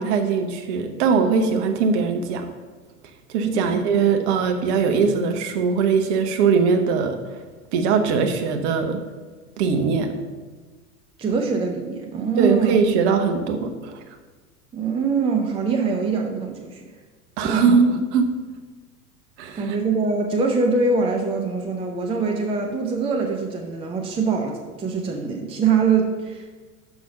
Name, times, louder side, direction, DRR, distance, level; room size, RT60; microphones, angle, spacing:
voice 1, 0.0-2.5 3.3-7.2 7.7-9.0 9.6-10.1 12.4-14.0 17.4-18.3 19.4-19.8, right 5 dB, 45° right, 6 dB, 1.0 m, -21 dB
voice 2, 11.2-12.8 14.7-16.8 17.4-17.8 19.6-26.5, right 4 dB, 15° right, 3 dB, 0.6 m, -23 dB
6.2 x 5.9 x 5.4 m, 1.4 s
figure-of-eight pair, 85°, 46 cm